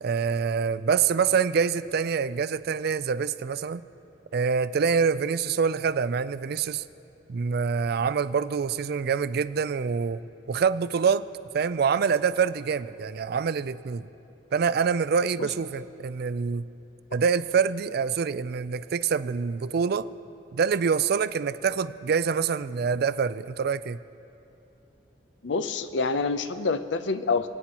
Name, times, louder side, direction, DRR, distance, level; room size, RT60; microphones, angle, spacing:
voice 1, 0.0-3.8 4.3-6.8 7.3-10.2 10.5-11.2 11.5-14.1 14.5-16.6 17.1-20.1 20.5-24.0, right 6 dB, 60° right, 15 dB, 0.4 m, -25 dB
voice 2, 25.4-27.5, left 4 dB, 80° left, 11 dB, 0.6 m, -27 dB
29.0 x 9.6 x 2.9 m, 2.9 s
head